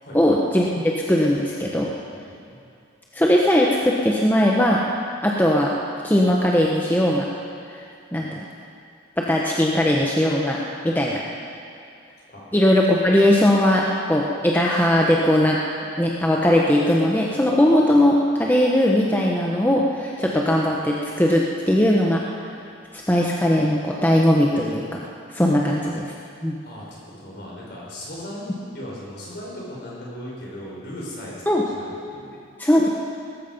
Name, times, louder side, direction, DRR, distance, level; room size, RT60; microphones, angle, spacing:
voice 1, 0.1-1.9 3.1-4.8 5.2-5.7 6.0-7.3 7.7-7.8 8.1-8.4 9.2-10.6 10.8-11.2 12.5-15.6 16.0-22.2 22.9-24.8 25.3-26.1 26.4-26.6 31.5-31.7 32.6-32.9, left 1 dB, 10° left, -2 dB, 0.9 m, -19 dB
voice 2, 2.1-2.6 12.3-12.4 26.6-31.4 31.7-32.4, equal, 55° left, -5 dB, 5.2 m, -37 dB
19.0 x 14.0 x 5.3 m, 2.4 s
head